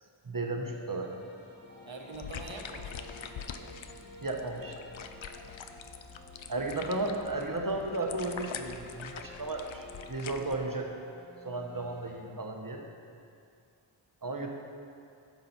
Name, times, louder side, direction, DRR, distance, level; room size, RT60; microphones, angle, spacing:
voice 1, 0.2-1.1 4.2-4.8 6.5-10.9 11.4-12.8 14.2-14.5, right 2 dB, 40° right, 2 dB, 1.0 m, -34 dB
sound 1, 0.7-12.2, left 2 dB, 20° left, 1.7 m, -51 dB
voice 2, 1.9-4.0 6.6-7.0, right 3 dB, 65° right, 2 dB, 1.0 m, -46 dB
sound 2, 2.1-10.6, left 7 dB, 70° left, 0.6 m, -44 dB
10.5 x 6.8 x 4.2 m, 2.4 s
wide cardioid pair, 45°, 49 cm